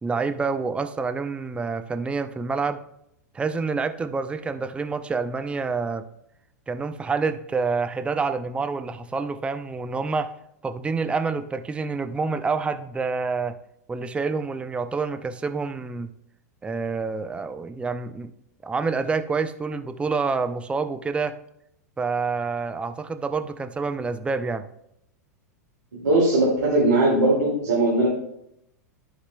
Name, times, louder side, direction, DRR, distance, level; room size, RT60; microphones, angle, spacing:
voice 1, 0.0-2.8 3.3-6.1 6.7-10.3 10.6-13.6 13.9-16.1 16.6-18.3 18.6-21.3 22.0-24.6, right 4 dB, 10° right, 9 dB, 0.5 m, -27 dB
voice 2, 25.9-28.1, right 2 dB, 85° right, -7 dB, 2.3 m, -20 dB
14.0 x 4.8 x 2.2 m, 0.77 s
hypercardioid pair, 95°, 9 cm